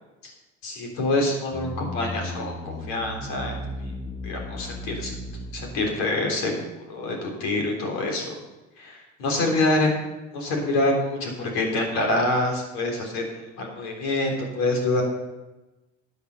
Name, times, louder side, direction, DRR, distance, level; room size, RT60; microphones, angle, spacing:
voice 1, 0.6-3.5 4.2-5.1 5.5-8.3 8.8-9.9 10.3-15.0, left 2 dB, 80° left, 1 dB, 3.6 m, -26 dB
sound 1, 1.5-6.0, left 1 dB, 30° left, 4.4 m, -35 dB
13.0 x 8.6 x 5.5 m, 1.1 s
supercardioid pair, 75°, 34 cm